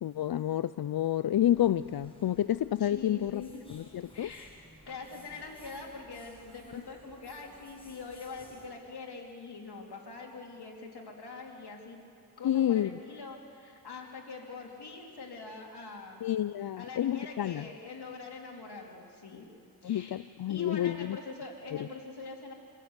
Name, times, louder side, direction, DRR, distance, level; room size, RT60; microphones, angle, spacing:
voice 1, 0.0-3.4 3.7-4.3 6.7-6.8 12.4-13.0 16.2-17.7 19.8-21.2 21.8-21.9, left 11 dB, 70° left, 15 dB, 0.5 m, -29 dB
sound 1, 1.3-8.7, equal, 15° left, 6.5 m, -57 dB
voice 2, 2.8-3.6 4.1-4.5 4.8-12.0 12.4-16.2 16.8-19.4 19.8-20.2 20.5-22.5, left 3 dB, 90° left, 0 dB, 3.4 m, -44 dB
27.0 x 17.0 x 8.1 m, 2.4 s
cardioid pair, 60°, 38 cm